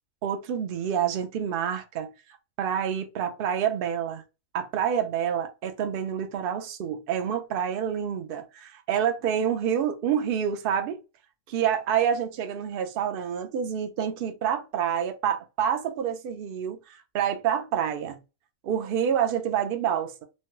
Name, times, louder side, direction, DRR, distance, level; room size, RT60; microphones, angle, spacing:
voice 1, 0.2-2.1 2.6-4.2 4.5-11.0 11.5-18.2 18.6-20.2, right 8 dB, 65° right, 0.5 m, -28 dB
3.1 x 2.2 x 2.9 m
omnidirectional pair, 1.5 m